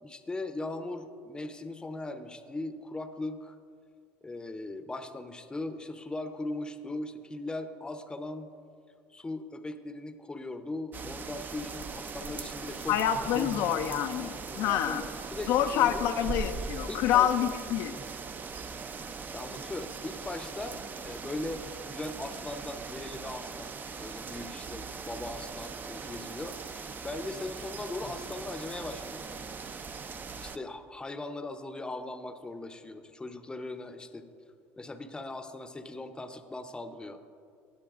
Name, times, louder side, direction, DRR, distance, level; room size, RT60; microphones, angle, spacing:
voice 1, 0.0-3.6 4.2-8.5 9.1-13.5 14.5-16.1 16.9-17.6 19.0-29.7 30.3-34.3 34.8-37.2, left 2 dB, 15° left, 8 dB, 0.6 m, -39 dB
sound 1, 10.9-30.6, right 4 dB, 30° right, 0.5 m, -40 dB
voice 2, 12.9-15.0 15.5-18.0, left 10 dB, 70° left, 7 dB, 0.4 m, -27 dB
18.0 x 6.8 x 2.5 m, 2.3 s
supercardioid pair, 90°, 6 cm